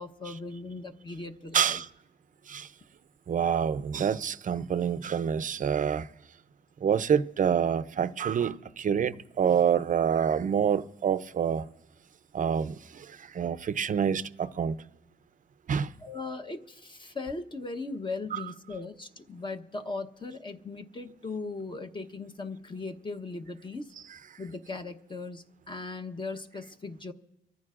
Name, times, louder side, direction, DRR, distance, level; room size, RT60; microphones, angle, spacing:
voice 1, 0.0-1.8 16.0-23.9 24.4-27.1, left 3 dB, 25° left, 1.0 m, -38 dB
voice 2, 1.5-1.9 2.5-2.7 3.3-6.0 6.8-11.6 12.3-12.7 13.4-14.7 15.7-15.9 18.3-18.4, right 8 dB, 40° right, 0.6 m, -27 dB
25.0 x 14.0 x 2.5 m
cardioid pair, 90°, 20 cm